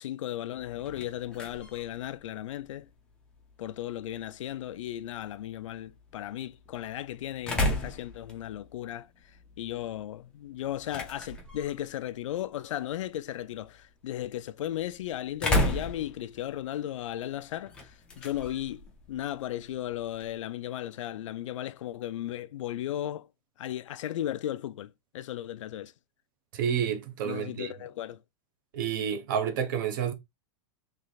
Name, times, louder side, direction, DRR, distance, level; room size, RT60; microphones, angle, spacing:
voice 1, 0.0-2.9 3.6-23.3 23.6-25.9 27.2-28.2, left 12 dB, 85° left, 0.5 m, -36 dB
sound 1, 0.6-20.4, left 1 dB, 5° left, 0.5 m, -37 dB
voice 2, 26.5-27.7 28.7-30.1, right 8 dB, 40° right, 0.8 m, -29 dB
3.3 x 3.2 x 4.0 m
supercardioid pair, 180°, 16 cm